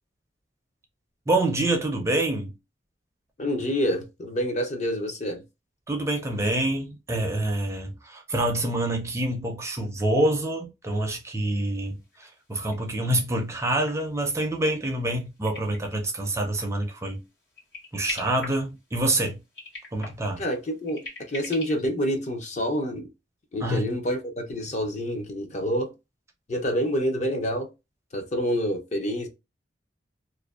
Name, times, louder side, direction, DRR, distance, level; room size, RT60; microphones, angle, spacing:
voice 1, 1.3-2.5 5.9-17.2 17.9-19.4 19.9-20.4 23.6-23.9, right 1 dB, 15° right, 0.4 m, -26 dB
voice 2, 3.4-5.4 20.4-23.1 23.5-25.9 26.5-27.7 28.1-29.3, equal, 40° left, 0.6 m, -27 dB
sound 1, 11.1-11.2 11.4-11.5 11.9-16.4 16.9-17.2 17.5-19.1 19.4-21.9, left 2 dB, 80° left, 1.4 m, -42 dB
2.5 x 2.1 x 2.3 m
head